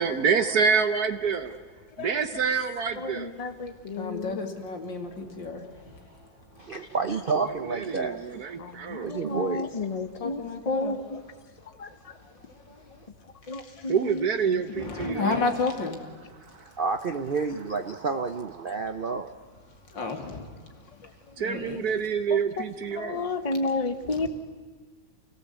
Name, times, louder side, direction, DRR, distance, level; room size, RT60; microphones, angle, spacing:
voice 1, 0.0-1.6 2.0-3.3 7.7-9.1 13.9-15.4 16.5-16.7 21.4-23.2, right 6 dB, 55° right, 10 dB, 1.3 m, -27 dB
voice 2, 3.0-4.4 8.0-8.1 8.6-11.2 11.8-12.1 13.5-15.4 21.0-21.1 22.3-22.7 22.9-24.3, left 3 dB, 25° left, 10 dB, 0.8 m, -32 dB
voice 3, 3.9-6.3 9.0-9.2 10.2-10.9 11.6-11.8 12.1-13.1 13.4-13.9 14.7-16.0 19.9-21.8 24.2-24.3, left 4 dB, 65° left, 4 dB, 3.1 m, -33 dB
voice 4, 6.6-8.3 9.0-9.7 16.8-19.3, right 4 dB, 80° right, 8 dB, 0.4 m, -29 dB
28.0 x 18.5 x 8.2 m, 1.5 s
omnidirectional pair, 2.2 m